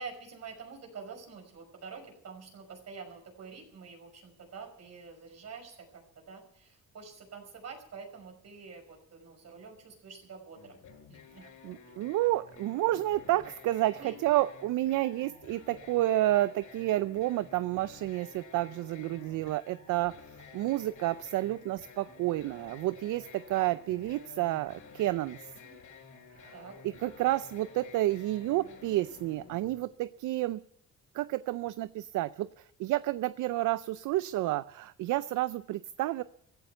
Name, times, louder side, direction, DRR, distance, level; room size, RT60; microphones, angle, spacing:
voice 1, 0.0-5.8 6.2-10.8 11.1-11.5 11.9-12.1 14.0-14.2 20.6-20.8 25.6-25.7 26.5-26.8, right 5 dB, 60° right, 4 dB, 5.8 m, -47 dB
sound 1, 10.5-29.7, left 5 dB, 85° left, 7.8 m, -52 dB
voice 2, 11.4-20.2 20.5-25.4 26.4-26.5 26.8-30.6 31.1-36.2, right 15 dB, 80° right, 15 dB, 0.5 m, -30 dB
16.0 x 13.0 x 6.9 m, 0.73 s
cardioid pair, 90°, 30 cm